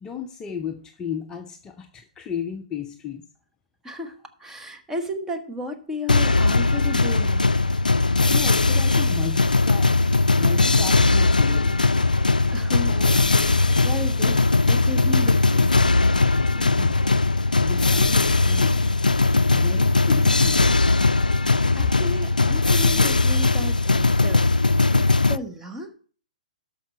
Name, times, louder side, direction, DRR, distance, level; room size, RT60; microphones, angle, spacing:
voice 1, 0.0-3.2 8.3-9.9 10.4-11.9 16.6-17.0 17.6-18.9 19.5-20.6, left 8 dB, 15° left, 5 dB, 0.7 m, -34 dB
voice 2, 3.8-7.5 12.5-15.7 21.7-25.9, left 1 dB, 10° right, 4 dB, 1.3 m, -34 dB
sound 1, 6.1-25.4, left 3 dB, 85° left, 0.4 m, -19 dB
13.0 x 5.4 x 4.5 m, 0.43 s
figure-of-eight pair, 125°, 4 cm